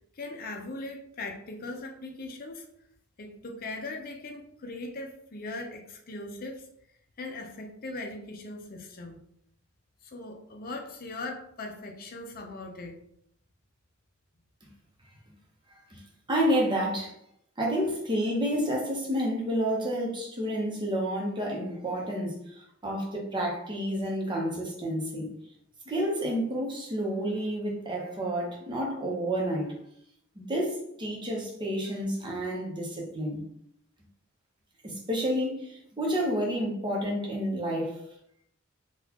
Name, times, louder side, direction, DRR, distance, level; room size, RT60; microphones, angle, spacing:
voice 1, 0.1-2.6 3.2-6.7 7.2-9.2 10.0-13.0, left 2 dB, 45° left, 2 dB, 0.6 m, -39 dB
voice 2, 16.3-17.1 17.6-25.3 25.9-29.8 30.4-33.5 34.8-38.0, equal, 20° right, -2 dB, 0.8 m, -30 dB
3.9 x 2.4 x 2.9 m, 0.71 s
head